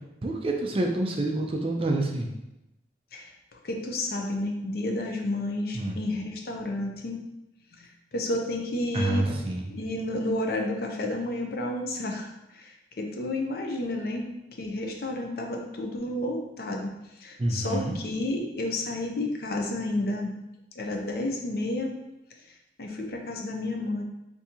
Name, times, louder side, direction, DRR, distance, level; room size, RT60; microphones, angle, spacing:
voice 1, 0.2-2.3 5.7-6.0 8.9-9.7 17.4-18.0, right 2 dB, 30° right, 1 dB, 0.4 m, -27 dB
voice 2, 3.6-7.2 7.8-9.3 9.7-12.3 12.5-14.3 14.6-16.9 17.2-20.3 20.8-21.9 22.8-24.0, left 1 dB, 55° left, 2 dB, 0.5 m, -31 dB
3.6 x 2.7 x 2.8 m, 0.91 s
head